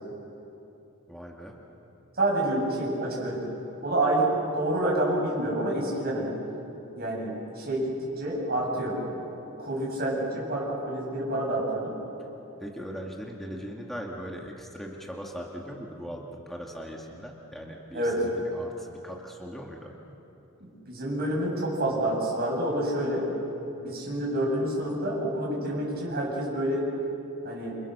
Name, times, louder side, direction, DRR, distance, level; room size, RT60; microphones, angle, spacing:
voice 1, 1.1-1.6 12.6-19.9, equal, ahead, -1 dB, 2.0 m, -39 dB
voice 2, 2.2-3.5 3.8-6.3 7.0-9.3 9.6-12.0 17.9-18.2 20.9-23.3 23.8-26.9 27.4-27.8, right 1 dB, 45° right, -3 dB, 8.0 m, -28 dB
29.5 x 26.5 x 6.8 m, 3.0 s
head